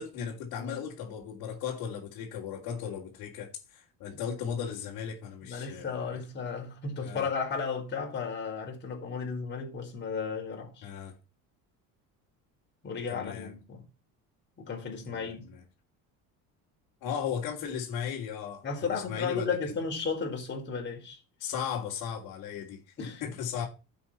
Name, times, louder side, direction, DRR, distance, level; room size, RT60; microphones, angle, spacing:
voice 1, 0.0-6.2 7.0-7.3 10.8-11.1 13.1-13.5 15.1-15.6 17.0-19.5 21.4-22.8 23.2-23.7, left 8 dB, 60° left, 3.1 m, -36 dB
voice 2, 0.6-0.9 4.1-4.2 5.4-10.9 12.8-13.8 14.6-15.5 18.6-21.2 23.0-23.3, left 5 dB, 30° left, 4.8 m, -34 dB
12.0 x 7.9 x 4.4 m
cardioid pair, 150°, 37 cm